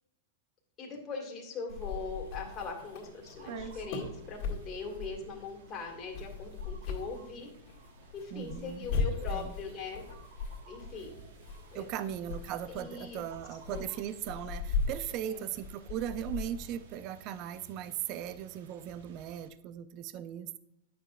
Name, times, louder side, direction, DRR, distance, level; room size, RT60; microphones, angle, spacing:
voice 1, 0.8-7.7 8.1-10.1 10.7-11.2 11.7-11.9 12.7-13.2 13.7-13.9 15.3-15.5, left 4 dB, 30° left, 0 dB, 1.9 m, -41 dB
sound 1, 1.7-16.9, left 4 dB, 50° left, 2.0 m, -39 dB
sound 2, 1.8-19.5, right 5 dB, 65° right, 0.8 m, -54 dB
voice 2, 8.3-8.9 9.3-9.5 11.7-20.6, right 10 dB, 45° right, 14 dB, 0.4 m, -38 dB
8.8 x 6.6 x 2.4 m, 0.81 s
hypercardioid pair, 115°, 0 cm